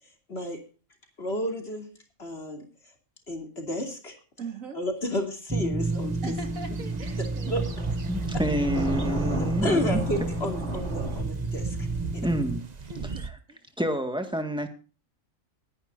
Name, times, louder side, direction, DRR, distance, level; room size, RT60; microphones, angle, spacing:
voice 1, 1.2-1.8 2.2-2.6 3.3-4.2 4.7-6.2 7.4-7.8 9.6-11.9 12.1-12.3, left 1 dB, 50° left, 3 dB, 3.1 m, -31 dB
voice 2, 4.4-4.8 6.2-7.7 8.3-8.4 12.8-13.6, right 4 dB, 85° right, 5 dB, 2.6 m, -41 dB
sound 1, 5.5-12.6, right 2 dB, 20° right, 0.4 m, -31 dB
sound 2, 5.8-13.3, right 5 dB, 35° right, 0.9 m, -38 dB
Thunder, 6.3-11.2, right 1 dB, 55° right, 4.0 m, -35 dB
voice 3, 8.1-10.0 12.2-12.6 13.8-14.7, equal, 5° right, 6 dB, 1.7 m, -28 dB
20.5 x 10.5 x 2.6 m, 0.36 s
omnidirectional pair, 1.4 m